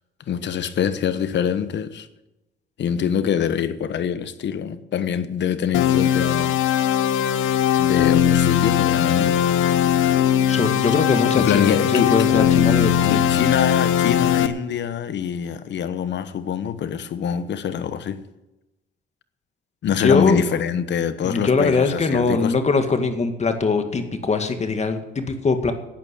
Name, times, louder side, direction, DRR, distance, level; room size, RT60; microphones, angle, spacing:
voice 1, 0.3-2.1 2.8-6.6 7.8-9.4 11.4-12.1 13.1-18.2 19.8-22.5, left 8 dB, 65° left, 1.1 m, -24 dB
sound 1, 5.7-14.5, left 10 dB, 90° left, 0.9 m, -19 dB
voice 2, 10.5-13.2 20.0-20.4 21.2-25.7, left 4 dB, 35° left, 2.1 m, -21 dB
12.0 x 9.0 x 8.6 m
cardioid pair, 90°, 20 cm